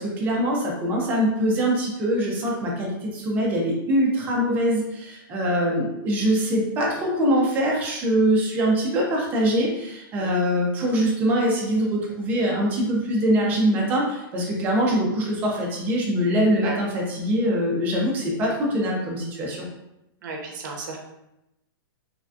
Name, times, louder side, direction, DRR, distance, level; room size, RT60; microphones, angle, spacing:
voice 1, 0.0-19.7, equal, 15° right, -2 dB, 0.4 m, -23 dB
voice 2, 20.2-21.0, right 3 dB, 50° right, 1 dB, 0.7 m, -34 dB
3.3 x 2.2 x 2.5 m, 0.88 s
hypercardioid pair, 170°, 12 cm